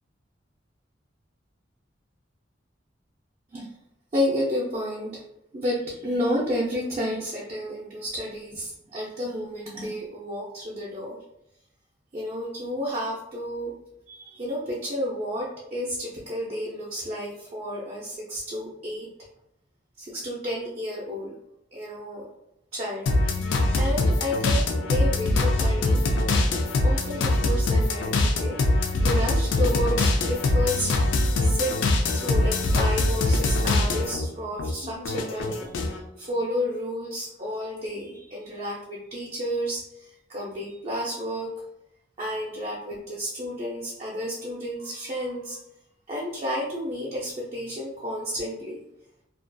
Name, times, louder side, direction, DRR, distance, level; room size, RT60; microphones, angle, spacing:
voice 1, 4.1-5.2 5.5-11.2 12.1-13.7 14.1-19.1 20.0-21.3 21.7-22.3 22.7-26.0 26.8-31.0 31.4-31.8 32.1-41.5 42.2-45.6 46.1-48.8, equal, 35° right, -5 dB, 0.4 m, -31 dB
sound 1, 23.1-34.3 34.6-36.0, left 2 dB, 75° left, 0.3 m, -23 dB
2.3 x 2.2 x 2.5 m, 0.83 s
head